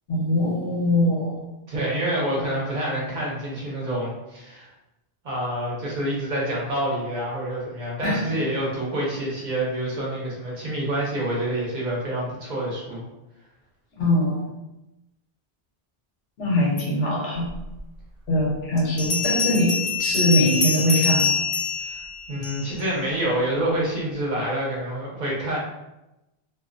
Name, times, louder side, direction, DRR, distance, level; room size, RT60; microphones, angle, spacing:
voice 1, 0.1-1.4 8.0-8.4 14.0-14.4 16.4-17.5 18.3-21.4, left 1 dB, 80° left, -4 dB, 1.0 m, -22 dB
voice 2, 1.7-4.7 5.2-13.1 21.8-22.0 22.3-25.6, right 1 dB, 50° right, -4 dB, 0.8 m, -27 dB
Bell, 17.8-17.9 19.0-22.9, left 5 dB, 60° left, 0.7 m, -25 dB
2.4 x 2.0 x 2.4 m, 0.95 s
omnidirectional pair, 1.0 m